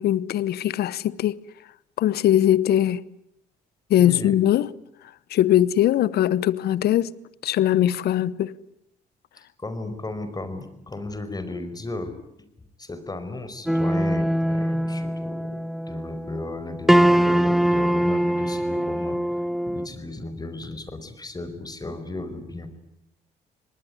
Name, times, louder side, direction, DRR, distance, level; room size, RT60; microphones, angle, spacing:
voice 1, 0.0-1.4 2.0-3.0 3.9-4.7 5.3-7.1 7.4-8.5, left 12 dB, 70° left, 1.0 m, -21 dB
voice 2, 4.0-4.4 9.4-12.2 12.8-19.2 19.7-22.8, left 2 dB, 20° left, 5.1 m, -35 dB
sound 1, 13.7-19.9, equal, ahead, 1.2 m, -22 dB
26.0 x 20.0 x 9.7 m
supercardioid pair, 65°, 17 cm